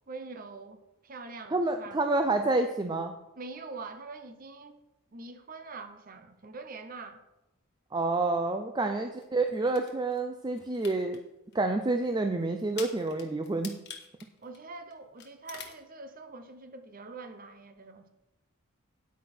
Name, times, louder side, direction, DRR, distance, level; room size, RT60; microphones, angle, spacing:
voice 1, 0.1-2.0 3.4-4.8 5.1-7.2 8.8-9.0 14.4-18.1, right 3 dB, 40° right, 8 dB, 0.8 m, -44 dB
voice 2, 1.5-3.1 7.9-11.2 11.5-13.7, right 2 dB, 20° right, 6 dB, 0.5 m, -28 dB
sound 1, 9.2-10.2 10.5-11.2 11.5-11.6 12.0-12.1 12.6-14.9 15.2-15.8, left 7 dB, 50° left, 1.3 m, -45 dB
9.4 x 8.9 x 4.4 m, 0.91 s
head